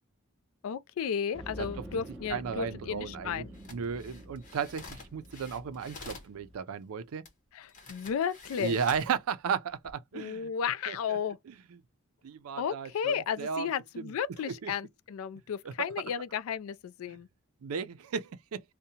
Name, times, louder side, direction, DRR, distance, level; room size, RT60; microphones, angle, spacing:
voice 1, 0.6-3.5 7.5-8.8 10.1-11.4 12.6-17.3, left 7 dB, 75° left, 0.3 m, -33 dB
sound 1, 1.3-6.6, equal, 5° left, 1.1 m, -47 dB
voice 2, 2.3-3.4 3.7-7.3 8.6-10.5 10.9-11.2 11.5-11.8 12.2-13.7 14.0-14.1 14.5-14.7 15.6-15.7 17.1-17.2 17.6-18.6, right 6 dB, 85° right, 0.4 m, -35 dB
sound 2, 3.5-6.3 7.2-7.3 7.7-9.1 9.7-9.9, left 3 dB, 40° left, 0.9 m, -48 dB
2.7 x 2.1 x 2.7 m
head